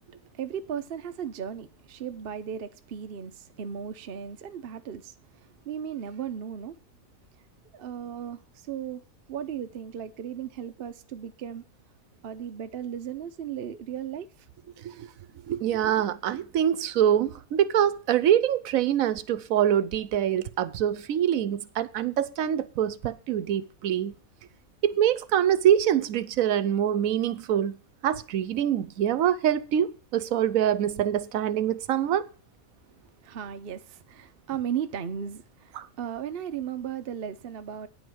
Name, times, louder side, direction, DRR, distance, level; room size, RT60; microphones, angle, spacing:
voice 1, 0.3-6.8 7.7-9.0 9.3-11.7 12.2-14.5 33.2-37.9, right 8 dB, 50° right, 0.8 m, -36 dB
voice 2, 15.5-24.1 24.8-27.8 28.0-32.2 35.8-35.9, right 10 dB, 80° right, 1.1 m, -25 dB
9.7 x 5.1 x 7.7 m
omnidirectional pair, 1.5 m